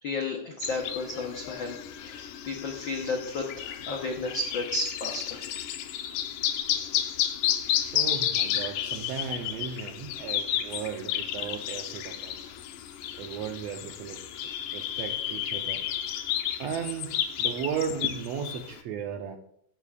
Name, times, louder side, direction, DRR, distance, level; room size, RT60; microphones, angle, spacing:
voice 1, 0.0-5.5 6.7-7.2, left 2 dB, 70° left, 1 dB, 1.1 m, -33 dB
sound 1, 0.6-18.8, left 11 dB, 90° left, 2.4 m, -32 dB
voice 2, 7.9-12.5 13.2-14.2 14.7-15.8 16.6-19.4, right 7 dB, 75° right, 5 dB, 1.6 m, -35 dB
15.5 x 12.0 x 2.4 m, 0.68 s
omnidirectional pair, 3.7 m